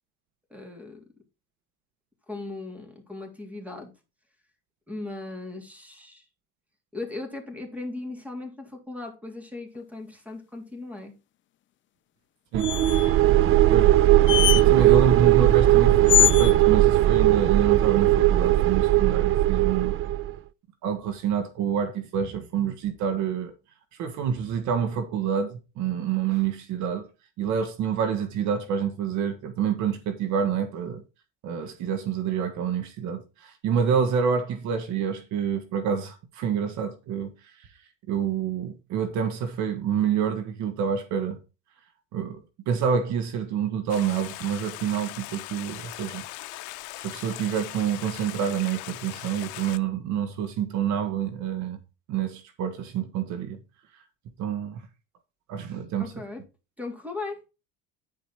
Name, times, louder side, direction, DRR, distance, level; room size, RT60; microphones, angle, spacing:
voice 1, 0.5-1.0 2.3-3.9 4.9-6.2 6.9-11.1 56.0-56.4 56.8-57.4, left 2 dB, 5° right, 3.3 m, -37 dB
sound 1, 12.5-20.3, right 14 dB, 45° right, 0.5 m, -19 dB
sound 2, 12.6-13.1 14.3-14.6 16.1-16.6, left 13 dB, 40° left, 0.5 m, -22 dB
voice 2, 14.6-19.9 20.8-23.5 24.0-27.1 27.4-31.0 31.4-37.3 38.1-41.4 42.1-46.2 47.0-51.8 52.1-53.6 54.4-54.9 55.5-56.2, right 7 dB, 70° right, 1.6 m, -27 dB
Stream, 43.9-49.8, left 19 dB, 75° left, 0.7 m, -39 dB
10.0 x 5.1 x 4.4 m
cardioid pair, 105°, 30 cm